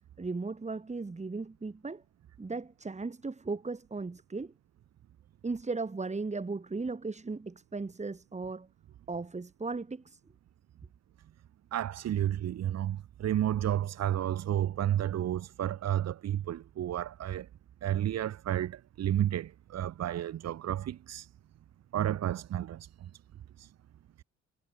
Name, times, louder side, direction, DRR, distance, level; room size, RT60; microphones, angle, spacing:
voice 1, 0.2-2.0 2.4-4.5 5.4-8.7 9.1-10.2, right 3 dB, 25° right, 3.7 m, -36 dB
voice 2, 11.7-17.5 17.8-21.3 21.9-22.9 23.6-23.7, right 11 dB, 60° right, 1.0 m, -31 dB
cardioid pair, 90°, 30 cm